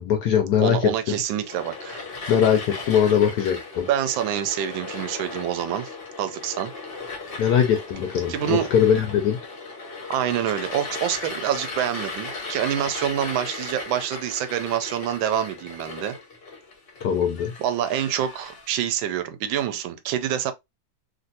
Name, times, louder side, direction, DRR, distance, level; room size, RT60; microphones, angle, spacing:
voice 1, 0.0-0.9 2.3-3.9 7.4-9.4 17.0-17.5, left 8 dB, 75° left, 1.0 m, -21 dB
voice 2, 0.6-2.0 3.9-5.9 6.2-6.7 8.3-8.7 10.1-16.1 17.6-20.5, right 10 dB, 80° right, 1.3 m, -26 dB
sound 1, 1.4-18.7, left 3 dB, 50° left, 0.7 m, -37 dB
3.3 x 2.5 x 2.6 m
omnidirectional pair, 2.1 m